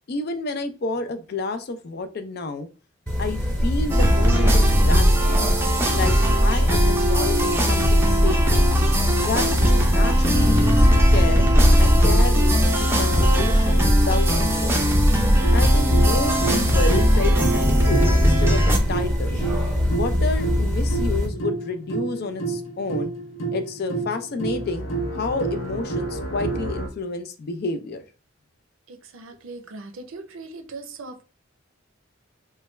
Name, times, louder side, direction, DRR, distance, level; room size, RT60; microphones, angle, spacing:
voice 1, 0.1-2.7 3.2-5.5 5.9-6.1 6.4-8.7 9.2-11.5 11.8-14.3 14.6-14.8 15.5-19.4 19.9-23.1 23.5-24.9 25.1-28.0, left 3 dB, 50° left, 0.4 m, -30 dB
Bathroom Ambience with Yel, 3.1-21.3, left 1 dB, 5° left, 0.9 m, -23 dB
sound 1, 3.9-18.8, equal, 10° right, 0.5 m, -19 dB
sound 2, 15.4-26.9, right 3 dB, 80° left, 0.8 m, -30 dB
voice 2, 28.9-31.2, right 3 dB, 90° right, 0.5 m, -39 dB
3.2 x 2.2 x 3.1 m
head